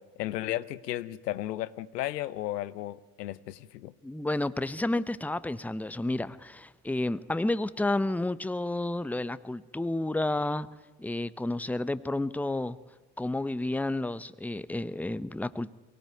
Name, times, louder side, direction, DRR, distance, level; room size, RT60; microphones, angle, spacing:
voice 1, 0.2-3.9, left 14 dB, 85° left, 17 dB, 0.8 m, -34 dB
voice 2, 4.0-10.7 11.0-12.8 13.2-15.7, left 2 dB, 5° left, 15 dB, 0.9 m, -31 dB
23.5 x 17.0 x 9.4 m, 1.3 s
hypercardioid pair, 55°, 47 cm